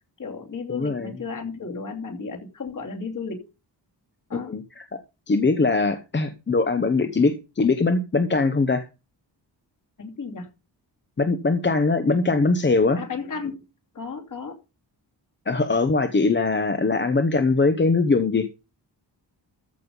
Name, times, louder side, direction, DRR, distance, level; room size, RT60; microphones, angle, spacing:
voice 1, 0.2-3.5 4.3-4.6 10.0-10.5 13.0-13.6 13.9-14.6, left 4 dB, 45° left, 2.8 m, -34 dB
voice 2, 0.7-1.1 4.5-4.8 5.3-8.9 11.2-13.0 15.5-18.5, left 3 dB, 25° left, 0.8 m, -21 dB
14.0 x 5.4 x 5.3 m
wide cardioid pair, 180°, 43 cm